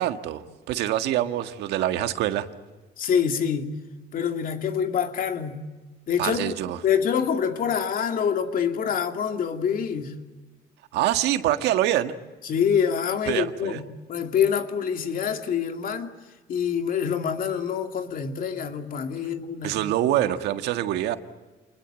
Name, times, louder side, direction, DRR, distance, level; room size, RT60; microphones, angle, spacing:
voice 1, 0.0-2.5 6.2-6.8 10.9-12.1 13.3-13.8 19.6-21.2, right 13 dB, 85° right, 1.7 m, -25 dB
voice 2, 3.0-3.7 4.1-5.6 6.1-10.1 12.4-13.8 14.1-16.1 16.5-19.8, left 7 dB, 55° left, 2.6 m, -26 dB
28.5 x 21.0 x 9.0 m
cardioid pair, 110°, 17 cm